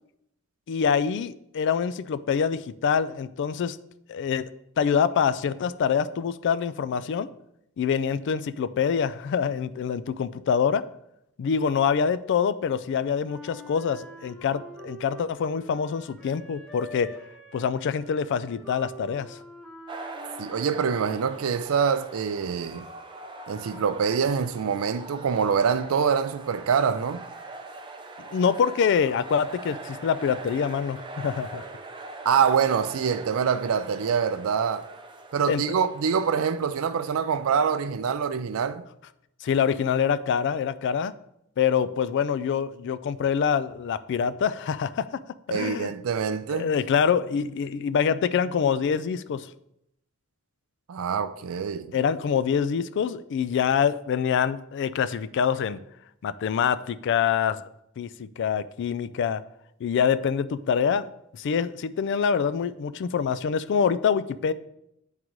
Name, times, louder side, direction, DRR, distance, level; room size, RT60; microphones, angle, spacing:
voice 1, 0.7-3.8 4.1-4.5 4.8-7.3 7.8-10.8 11.4-17.1 17.5-19.4 28.2-31.6 35.5-35.6 39.4-41.1 41.6-45.1 45.5-45.9 46.5-49.5 51.9-55.8 56.2-57.6 58.0-59.4 59.8-61.1 61.3-64.5, left 7 dB, 60° left, 0.3 m, -25 dB
Wind instrument woodwind instrument, 13.2-21.4, equal, 5° left, 0.9 m, -46 dB
sound 1, 19.9-37.5, right 3 dB, 25° right, 0.6 m, -42 dB
voice 2, 20.4-22.8 23.5-27.2 32.3-34.9 35.3-38.8 45.5-46.7 50.9-51.9, right 6 dB, 70° right, 0.4 m, -25 dB
9.4 x 3.7 x 3.1 m
head